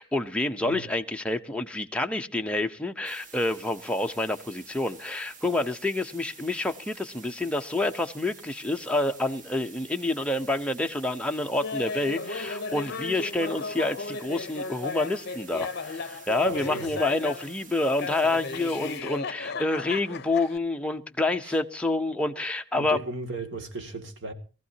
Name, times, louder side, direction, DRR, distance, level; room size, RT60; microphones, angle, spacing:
voice 1, 0.0-23.0, left 2 dB, 5° left, 0.8 m, -28 dB
sound 1, 3.0-19.0, right 4 dB, 40° right, 1.7 m, -49 dB
Laughter, 11.6-17.6 18.0-20.6, left 4 dB, 55° left, 0.8 m, -35 dB
voice 2, 16.4-16.9 21.4-21.6 22.8-24.3, right 2 dB, 65° right, 2.3 m, -36 dB
23.0 x 15.0 x 2.8 m
head